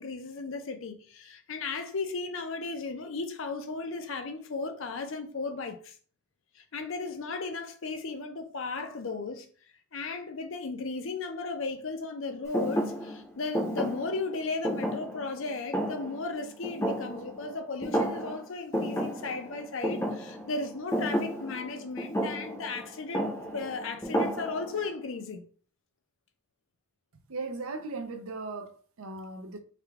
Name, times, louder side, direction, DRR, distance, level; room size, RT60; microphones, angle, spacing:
voice 1, 0.0-5.9 6.6-9.5 9.9-25.5, left 3 dB, 65° left, 0.6 m, -35 dB
Thump thud, 12.5-17.5 17.8-18.4 18.7-24.9, equal, 15° left, 0.7 m, -32 dB
voice 2, 27.3-29.6, right 3 dB, 75° right, 0.6 m, -37 dB
3.7 x 2.3 x 3.3 m
head